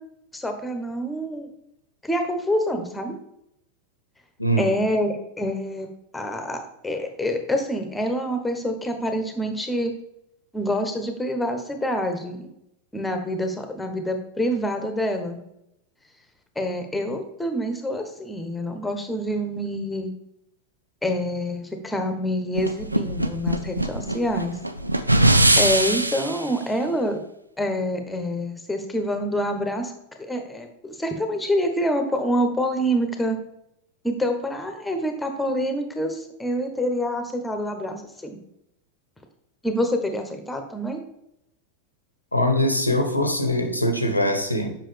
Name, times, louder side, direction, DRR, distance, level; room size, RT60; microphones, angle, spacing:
voice 1, 0.3-1.5 2.0-3.2 4.6-5.9 6.1-9.9 10.5-12.5 12.9-15.4 16.5-20.1 21.0-24.6 25.6-27.2 27.6-29.9 30.2-33.4 34.0-38.4 39.6-41.0, equal, 5° left, 5 dB, 1.2 m, -26 dB
voice 2, 4.4-4.7 42.3-44.8, equal, 85° left, 6 dB, 0.9 m, -22 dB
sound 1, 22.6-26.5, right 1 dB, 85° right, 0.5 m, -21 dB
7.6 x 5.8 x 3.4 m, 0.79 s
figure-of-eight pair, 90°, 0 cm